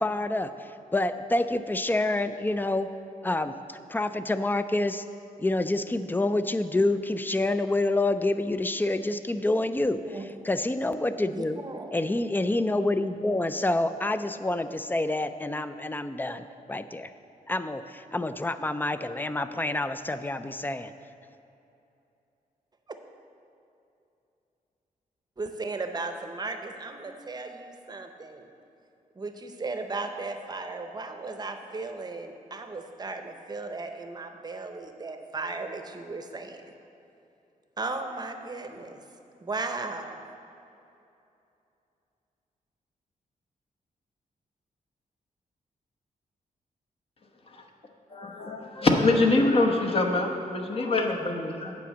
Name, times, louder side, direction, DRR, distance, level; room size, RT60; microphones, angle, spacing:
voice 1, 0.0-2.9 3.2-5.0 5.4-10.2 10.4-11.6 11.9-17.1 17.5-20.9, left 2 dB, 15° left, 11 dB, 0.3 m, -27 dB
voice 2, 11.3-11.9 22.9-23.0 25.4-28.5 29.2-36.6 37.8-39.0 39.4-40.2, right 3 dB, 30° right, 6 dB, 0.7 m, -36 dB
voice 3, 48.1-51.7, left 2 dB, 40° left, 2 dB, 1.0 m, -24 dB
8.5 x 5.0 x 7.3 m, 2.7 s
cardioid pair, 100°, 15 cm